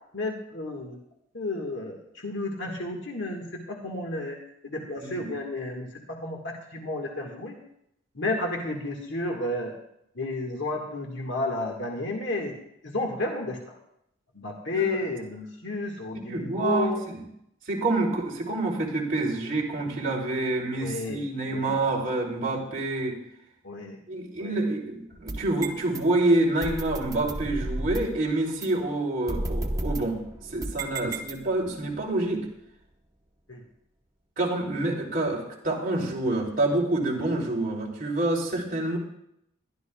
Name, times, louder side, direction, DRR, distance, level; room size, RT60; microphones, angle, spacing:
voice 1, 0.1-1.0 1.3-4.4 4.6-7.6 8.2-9.7 10.2-12.5 12.8-13.8 14.3-17.0 20.8-21.2 21.5-21.8 23.6-24.0 24.4-24.6 31.0-31.1 33.5-33.6, left 2 dB, 60° left, 1 dB, 1.7 m, -32 dB
voice 2, 5.0-5.3 14.7-15.0 16.3-17.2 17.6-23.2 24.1-30.2 30.5-32.5 34.4-39.0, right 2 dB, 40° right, -3 dB, 3.1 m, -27 dB
sound 1, 25.1-26.0 26.6-28.2 28.6-28.7 29.3-31.7, right 1 dB, 20° right, 0.9 m, -33 dB
21.5 x 12.0 x 2.3 m, 0.77 s
head